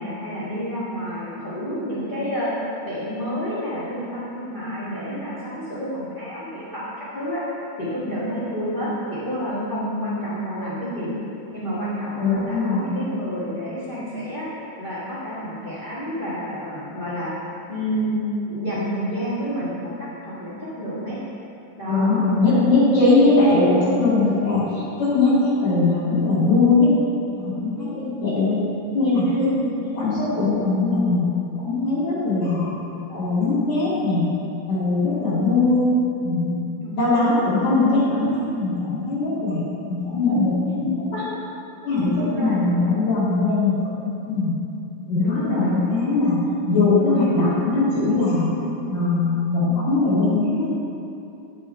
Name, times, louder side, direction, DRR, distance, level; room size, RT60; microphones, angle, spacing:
voice 1, 0.0-2.5 2.8-7.4 7.8-11.1 11.5-14.4 14.8-17.3 17.7-21.2 21.8-22.2 29.2-29.7 36.8-37.3 42.1-42.7 45.1-45.8 48.4-48.7 49.6-50.0, equal, 70° left, -9 dB, 0.4 m, -29 dB
voice 2, 12.2-12.9 21.9-26.9 27.2-28.6 28.9-29.5 29.8-31.2 31.6-32.7 33.1-34.3 34.7-35.9 36.2-36.5 37.0-41.2 41.8-42.1 42.4-44.5 45.1-48.5 48.9-50.7, left 3 dB, 55° left, -14 dB, 3.0 m, -20 dB
10.0 x 6.1 x 4.4 m, 2.7 s
omnidirectional pair, 4.0 m